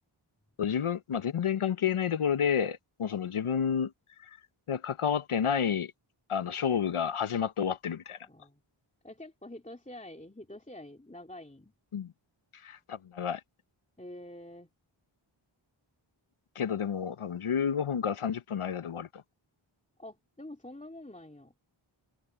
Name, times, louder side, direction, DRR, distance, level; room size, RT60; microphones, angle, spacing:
voice 1, 0.6-3.9 4.2-4.4 4.7-5.9 6.3-8.2 11.9-12.1 12.5-13.4 16.6-19.2, left 7 dB, 85° left, 0.9 m, -30 dB
voice 2, 8.3-8.6 9.0-11.7 14.0-14.7 20.0-21.5, left 1 dB, 15° left, 2.7 m, -46 dB
wide cardioid pair, 45°, 49 cm